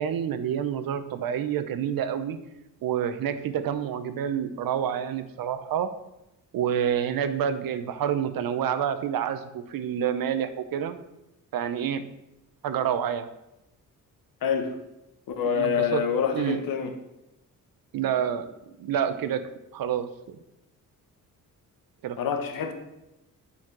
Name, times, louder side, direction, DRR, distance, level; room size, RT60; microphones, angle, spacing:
voice 1, 0.0-2.4 2.8-5.9 6.5-11.0 11.5-12.0 12.6-13.3 15.4-16.0 16.3-16.6 17.9-18.5 18.8-19.4 19.7-20.4 22.0-22.2, right 9 dB, 80° right, 11 dB, 0.9 m, -28 dB
voice 2, 14.4-14.8 15.3-16.9 22.2-22.7, left 7 dB, 75° left, 6 dB, 1.2 m, -26 dB
9.2 x 5.7 x 6.1 m, 0.92 s
wide cardioid pair, 170°, 34 cm